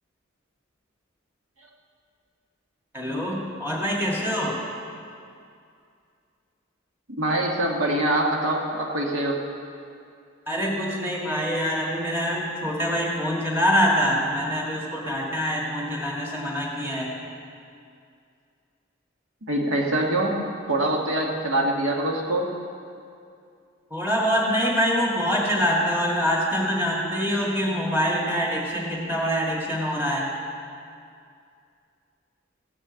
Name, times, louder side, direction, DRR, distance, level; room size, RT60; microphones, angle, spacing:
voice 1, 2.9-4.6 10.5-17.1 23.9-30.3, equal, 10° right, -4 dB, 2.2 m, -25 dB
voice 2, 7.2-9.4 19.5-22.5, right 1 dB, 85° right, -1 dB, 1.7 m, -24 dB
15.5 x 6.6 x 8.1 m, 2.4 s
head